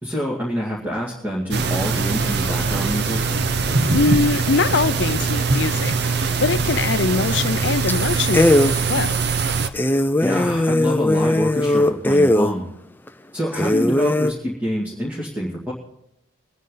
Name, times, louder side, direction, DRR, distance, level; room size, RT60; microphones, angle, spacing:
voice 1, 0.0-3.2 10.2-12.6 13.3-15.7, equal, 10° right, -5 dB, 2.1 m, -26 dB
sound 1, 1.5-9.7, right 4 dB, 50° right, 0.8 m, -22 dB
voice 2, 3.9-9.2, left 4 dB, 60° left, 15 dB, 0.5 m, -23 dB
sound 2, 7.3-7.6 7.9-8.0 8.3-8.7 9.2-9.3 9.7-12.5 13.1-13.2 13.5-14.3, left 1 dB, 10° left, 0.4 m, -18 dB
23.0 x 9.4 x 3.9 m, 0.81 s
head